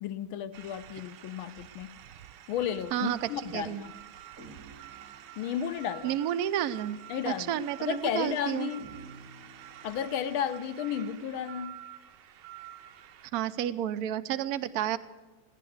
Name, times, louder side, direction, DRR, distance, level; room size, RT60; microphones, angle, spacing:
voice 1, 0.0-1.9 2.5-3.9 5.4-6.2 7.1-8.9 9.8-11.7, left 9 dB, 80° left, 11 dB, 1.5 m, -33 dB
sound 1, 0.5-13.3, right 12 dB, 85° right, 1.6 m, -49 dB
sound 2, 2.8-6.0 7.1-10.4, right 2 dB, 40° right, 2.4 m, -54 dB
voice 2, 2.9-3.8 6.0-7.0 7.3-8.7 13.3-15.0, right 11 dB, 65° right, 10 dB, 0.9 m, -31 dB
16.5 x 10.5 x 7.8 m, 1.2 s
omnidirectional pair, 2.2 m